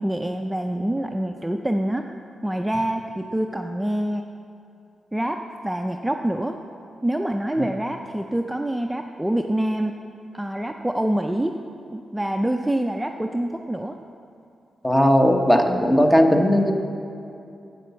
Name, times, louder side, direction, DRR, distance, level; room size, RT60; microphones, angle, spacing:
voice 1, 0.0-2.1 2.4-4.2 5.1-6.6 7.0-9.9 10.3-11.5 11.9-14.0, right 1 dB, 10° right, 4 dB, 0.5 m, -26 dB
voice 2, 14.8-16.7, equal, 15° left, 4 dB, 1.1 m, -17 dB
8.4 x 7.5 x 6.9 m, 2.7 s
cardioid pair, 65°, 0 cm